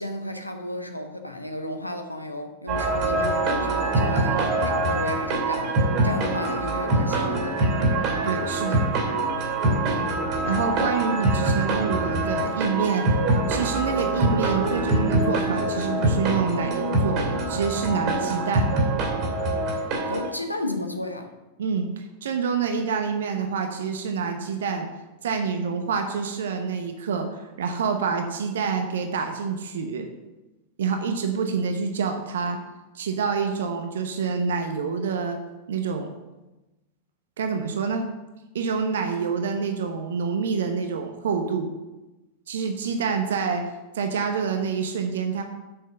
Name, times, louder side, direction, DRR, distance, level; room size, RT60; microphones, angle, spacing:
voice 1, 0.0-7.6 10.0-10.2 20.1-21.3, left 1 dB, 85° left, 6 dB, 0.9 m, -33 dB
sound 1, 2.7-20.3, right 2 dB, 40° right, 2.5 m, -24 dB
voice 2, 8.2-8.8 10.4-13.1 13.5-18.7 21.6-24.9 25.2-30.1 30.8-32.6 32.9-35.4 35.7-36.1 37.4-38.1 38.5-41.7 42.5-43.7 43.9-45.4, right 5 dB, 60° right, 5 dB, 0.9 m, -27 dB
7.8 x 6.6 x 6.6 m, 1.1 s
figure-of-eight pair, 90°, 0 cm